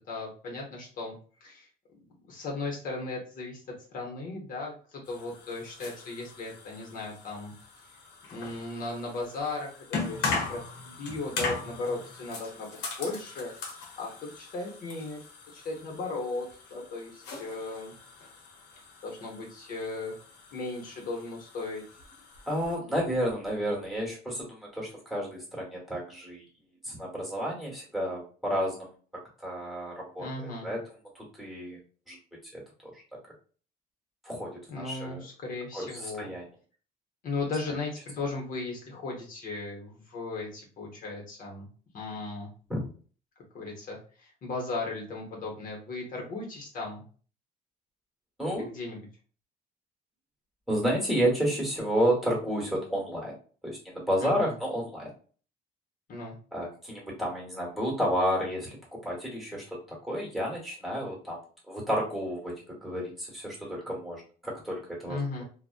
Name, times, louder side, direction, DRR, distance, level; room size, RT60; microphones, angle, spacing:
voice 1, 0.1-1.2 1.4-1.7 2.3-3.6 3.9-7.5 8.3-12.7 13.0-13.5 14.0-15.2 15.5-17.9 19.0-20.2 20.5-21.8 30.2-30.7 34.7-36.3 37.2-41.7 41.9-42.5 43.5-47.0 48.5-49.0 54.2-54.5 56.1-56.4 65.0-65.4, left 3 dB, 55° left, -1 dB, 0.8 m, -36 dB
sound 1, 5.0-22.8, left 4 dB, 85° left, 0.8 m, -40 dB
voice 2, 22.5-26.4 26.8-30.8 31.1-31.8 32.1-32.2 32.5-33.0 34.2-35.2 35.7-36.4 42.7-42.9 48.4-48.7 50.7-53.4 53.6-55.1 56.5-61.4 61.7-65.4, equal, ahead, -3 dB, 1.3 m, -31 dB
2.4 x 2.1 x 2.4 m, 0.41 s
cardioid pair, 110°, 17 cm